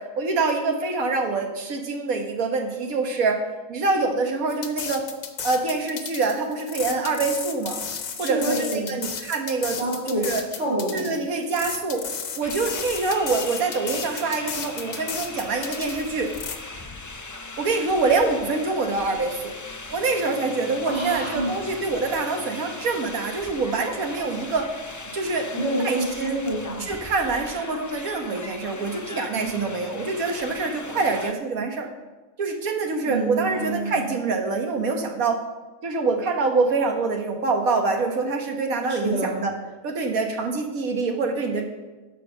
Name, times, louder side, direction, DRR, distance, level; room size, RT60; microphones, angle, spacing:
voice 1, 0.0-3.4 3.7-5.1 5.4-7.8 8.2-9.8 10.1-10.4 10.9-12.0 12.4-16.3 17.6-19.5 19.9-24.7 25.1-25.5 25.8-26.4 26.8-31.9 32.4-35.4 35.8-39.5 39.8-41.7, right 3 dB, 85° right, 4 dB, 1.7 m, -25 dB
sound 1, 4.5-16.6, left 6 dB, 75° left, 1.5 m, -34 dB
voice 2, 8.2-8.9 9.8-10.3 10.5-11.1 20.9-21.6 25.5-26.9 33.0-34.1 38.9-39.5, right 2 dB, 55° right, -5 dB, 3.8 m, -27 dB
sound 2, 12.4-31.3, left 2 dB, 30° left, 0.3 m, -39 dB
11.0 x 6.7 x 6.4 m, 1.2 s
omnidirectional pair, 1.4 m